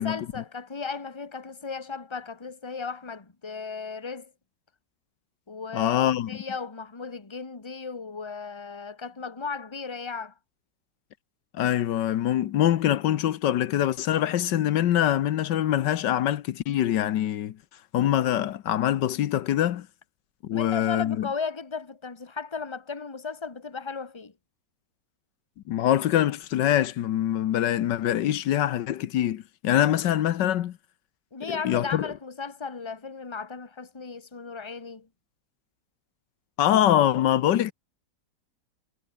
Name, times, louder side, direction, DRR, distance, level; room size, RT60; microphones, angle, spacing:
voice 1, 0.0-4.3 5.5-6.0 6.3-10.3 20.5-24.3 31.3-35.1, left 5 dB, 15° left, 1.5 m, -35 dB
voice 2, 5.7-6.4 11.5-17.6 17.9-19.9 20.4-21.3 25.7-30.8 31.4-32.1 36.6-37.7, left 11 dB, 85° left, 1.5 m, -24 dB
omnidirectional pair, 1.9 m